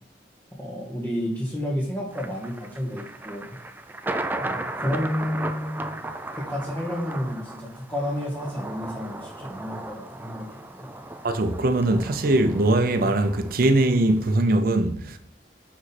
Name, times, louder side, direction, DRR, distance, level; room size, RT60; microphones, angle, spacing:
voice 1, 0.5-3.6 4.4-6.0 6.3-10.6, equal, 15° left, 1.3 m, -31 dB
Thunder, 2.1-14.4, right 2 dB, 10° right, 0.4 m, -36 dB
voice 2, 11.2-15.2, right 2 dB, 55° right, 0.6 m, -21 dB
5.5 x 4.9 x 4.2 m
head